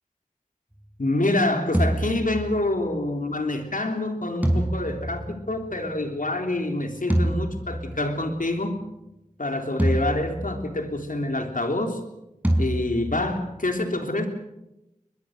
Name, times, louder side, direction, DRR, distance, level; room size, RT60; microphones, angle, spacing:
voice 1, 1.0-8.8 9.4-12.0 12.6-14.3, left 2 dB, 75° left, 5 dB, 3.4 m, -26 dB
sound 1, 1.7-2.9 4.4-6.0 7.1-8.3 9.8-11.0 12.4-13.6, right 1 dB, 10° right, 4.8 m, -27 dB
22.5 x 21.5 x 6.6 m, 0.91 s
wide cardioid pair, 40°, 14 cm